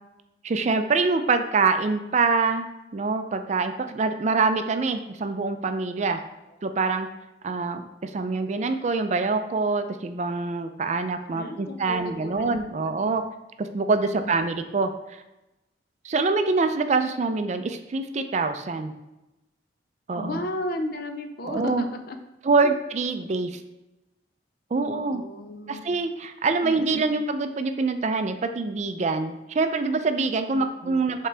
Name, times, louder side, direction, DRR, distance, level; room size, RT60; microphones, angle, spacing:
voice 1, 0.4-2.7 2.9-6.2 6.6-7.1 7.4-13.2 13.6-15.2 16.0-18.9 20.1-20.4 21.4-21.9 22.4-23.6 24.7-25.2 25.7-31.3, right 4 dB, 40° right, 8 dB, 0.4 m, -25 dB
voice 2, 11.3-12.5 12.8-13.1 14.2-14.4 20.2-22.2 24.9-25.8 26.6-27.1 30.5-31.2, left 1 dB, 55° left, 6 dB, 0.6 m, -35 dB
7.5 x 3.7 x 3.4 m, 0.97 s
head